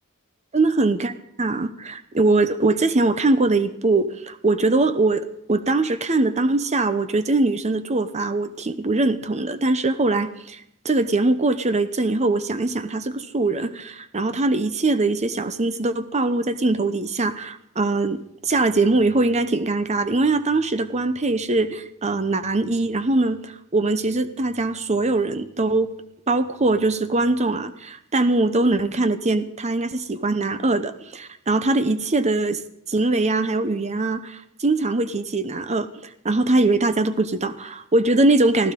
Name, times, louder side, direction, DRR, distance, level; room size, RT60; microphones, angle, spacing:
voice 1, 0.5-1.1 1.4-10.6 10.8-25.9 26.3-32.6 32.9-35.9 36.2-38.7, right 2 dB, 30° right, 11 dB, 0.8 m, -22 dB
24.0 x 14.5 x 3.8 m, 0.76 s
head